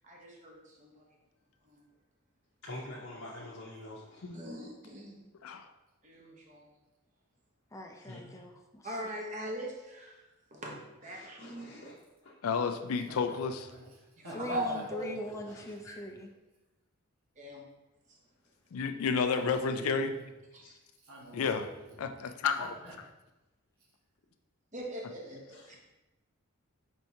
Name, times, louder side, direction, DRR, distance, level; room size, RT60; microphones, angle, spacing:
voice 1, 0.0-1.0 1.6-1.8 4.3-5.2 6.0-6.7 8.8-10.2 10.5-11.7 14.4-15.3 17.4-17.7 20.5-20.6 24.7-25.6, right 1 dB, 35° right, -1 dB, 0.9 m, -40 dB
voice 2, 2.6-4.4 8.0-8.5 11.1-11.9 12.2-12.4 15.5-16.0 20.6-20.7 25.5-25.8, left 1 dB, 65° left, -6 dB, 0.8 m, -46 dB
voice 3, 7.7-9.0 14.3-16.3, left 2 dB, 15° left, 2 dB, 0.4 m, -41 dB
voice 4, 12.4-13.6 18.7-20.1 21.3-21.7 22.0-22.7, left 5 dB, 80° left, 7 dB, 0.4 m, -30 dB
voice 5, 13.7-15.1 15.5-15.6 19.3-20.3 21.0-22.0 22.6-22.9, right 1 dB, 80° right, -3 dB, 1.4 m, -47 dB
4.4 x 4.3 x 2.7 m, 1.0 s
head